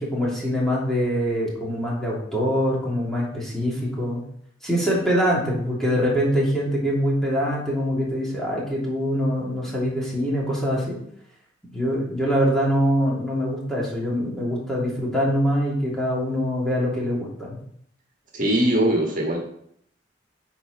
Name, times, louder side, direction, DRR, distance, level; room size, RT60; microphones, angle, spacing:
voice 1, 0.0-4.2 4.6-11.0 11.7-17.6, equal, ahead, -5 dB, 2.8 m, -24 dB
voice 2, 18.3-19.4, right 1 dB, 50° right, 0 dB, 1.7 m, -21 dB
8.4 x 4.6 x 5.9 m, 0.68 s
head